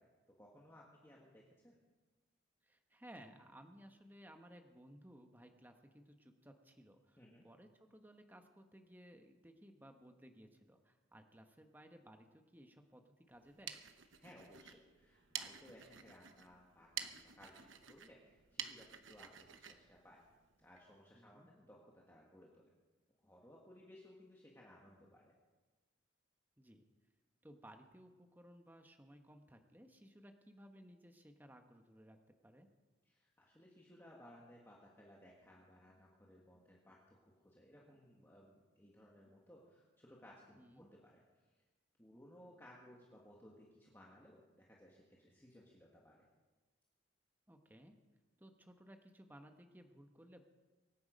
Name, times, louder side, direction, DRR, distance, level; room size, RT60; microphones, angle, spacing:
voice 1, 0.0-1.8 7.2-7.5 14.1-20.2 20.6-22.7 23.2-25.3 33.0-41.2 42.0-46.2, left 1 dB, 10° left, -3 dB, 1.7 m, -61 dB
voice 2, 2.6-13.8 21.1-21.5 26.6-26.8 27.4-32.2 32.4-32.7 40.6-40.9 47.5-47.9 48.4-50.5, equal, 10° right, 5 dB, 1.0 m, -59 dB
sound 1, 13.3-20.9, right 9 dB, 80° right, 1.0 m, -50 dB
24.0 x 9.5 x 5.2 m, 1.3 s
head